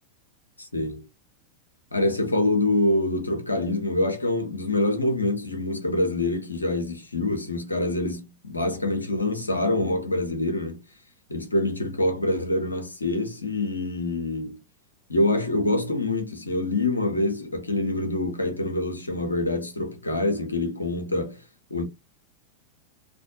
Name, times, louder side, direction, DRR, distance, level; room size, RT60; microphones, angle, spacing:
voice 1, 0.6-1.1 1.9-10.8 11.3-14.6 15.1-21.4 21.7-21.8, left 2 dB, 80° left, 0.7 m, -25 dB
2.5 x 2.3 x 2.7 m
figure-of-eight pair, 90°, 0 cm